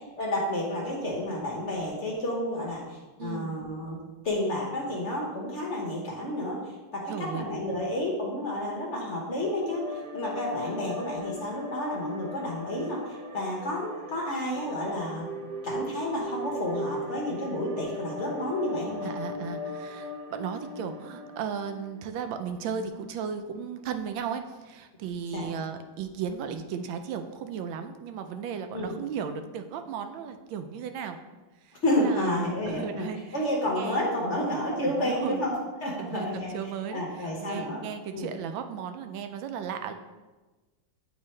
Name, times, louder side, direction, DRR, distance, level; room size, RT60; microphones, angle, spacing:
voice 1, 0.2-4.0 4.2-6.6 6.9-15.3 15.6-19.1 19.4-19.5 25.3-25.5 28.7-28.9 31.8-33.1 33.3-35.5 35.8-37.8 38.1-38.3, left 1 dB, 45° left, -2 dB, 1.0 m, -30 dB
voice 2, 3.2-3.6 7.1-7.5 19.0-31.2 31.6-32.3 32.7-33.2 33.7-34.0 34.8-35.4 36.0-39.9, right 7 dB, 85° right, 8 dB, 1.3 m, -35 dB
sound 1, 9.1-22.4, left 1 dB, 65° right, 1.8 m, -38 dB
8.8 x 3.6 x 3.2 m, 1.2 s
omnidirectional pair, 2.1 m